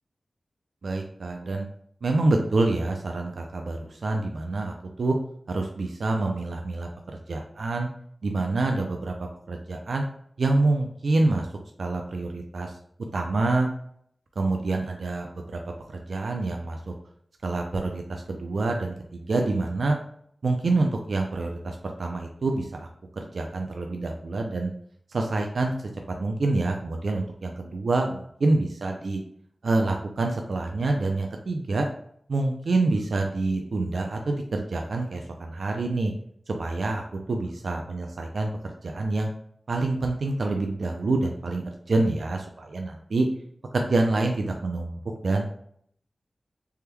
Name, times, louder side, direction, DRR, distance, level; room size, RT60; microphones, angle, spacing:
voice 1, 0.8-1.7 2.0-5.2 5.5-7.9 8.2-9.1 9.5-10.0 10.4-11.5 11.8-12.7 13.1-13.7 14.4-15.6 15.9-16.9 17.4-20.0 20.4-22.9 23.2-24.7 25.1-25.7 26.1-29.2 29.6-31.9 32.3-36.1 36.5-37.0 37.3-39.3 39.7-43.3 43.7-45.5, right 2 dB, 80° right, 3 dB, 0.4 m, -27 dB
3.4 x 2.2 x 2.9 m, 0.66 s
cardioid pair, 50°, 0 cm